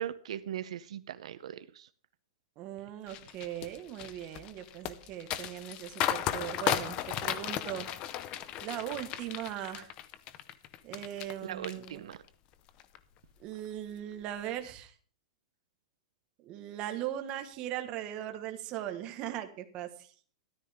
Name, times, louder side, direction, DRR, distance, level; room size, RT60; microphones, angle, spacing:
voice 1, 0.0-1.9 11.4-12.2, right 10 dB, 80° right, 13 dB, 0.7 m, -39 dB
voice 2, 2.6-7.9 8.6-9.9 10.8-12.1 13.4-14.9 16.4-20.1, right 12 dB, 30° right, 7 dB, 1.4 m, -39 dB
sound 1, 3.1-11.3 11.6-12.3 12.7-13.0, left 12 dB, 30° left, 0.7 m, -35 dB
13.5 x 12.0 x 3.6 m, 0.42 s
supercardioid pair, 165°, 3 cm